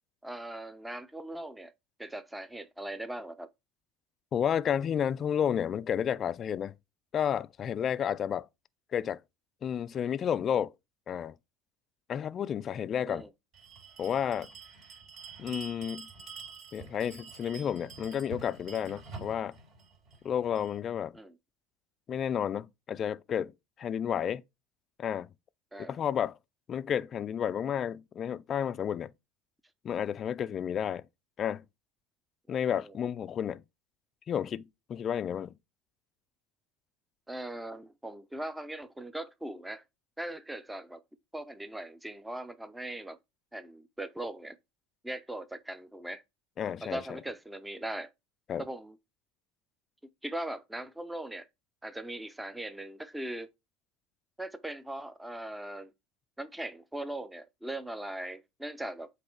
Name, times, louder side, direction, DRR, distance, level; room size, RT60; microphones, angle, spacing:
voice 1, 0.2-1.7 2.0-3.5 13.0-13.3 21.1-21.4 25.7-26.0 32.5-33.0 37.3-39.8 40.2-41.0 41.3-43.2 43.5-44.6 45.0-46.2 46.8-48.1 48.6-49.0 50.2-51.5 51.8-53.5 54.4-55.9 56.4-59.1, right 1 dB, 5° right, 0.7 m, -40 dB
voice 2, 4.3-6.7 7.1-8.5 8.9-9.2 9.6-10.7 11.1-11.3 12.1-13.3 14.0-14.5 15.4-16.1 16.7-19.6 20.2-21.2 22.1-23.5 23.8-24.4 25.0-25.3 25.8-26.4 26.7-29.1 29.8-31.0 31.4-31.6 32.5-33.6 34.3-35.5 46.6-47.0 48.5-48.6, left 8 dB, 40° left, 0.4 m, -31 dB
Bell, 13.5-20.8, right 4 dB, 50° right, 4.8 m, -47 dB
7.8 x 3.2 x 4.5 m
hypercardioid pair, 85°, 0 cm